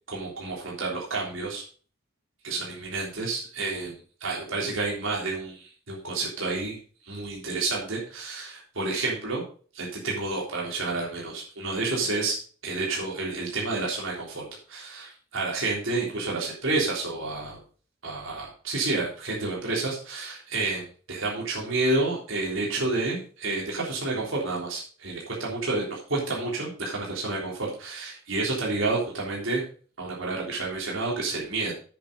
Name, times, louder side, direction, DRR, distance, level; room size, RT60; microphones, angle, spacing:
voice 1, 0.1-1.6 2.4-6.8 7.0-9.4 9.7-12.4 12.6-17.6 18.0-29.6 30.0-31.7, right 3 dB, 75° right, -3 dB, 3.5 m, -30 dB
8.6 x 7.6 x 5.3 m, 0.41 s
head